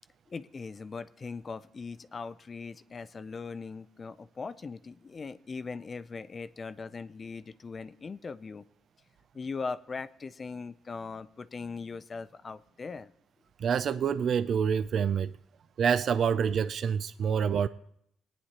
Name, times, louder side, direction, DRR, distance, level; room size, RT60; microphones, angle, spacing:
voice 1, 0.3-8.7 9.3-13.1, left 4 dB, 35° left, 0.4 m, -40 dB
voice 2, 13.6-15.4 15.8-17.7, right 7 dB, 60° right, 0.4 m, -27 dB
19.0 x 9.6 x 2.9 m
cardioid pair, 90°, 0 cm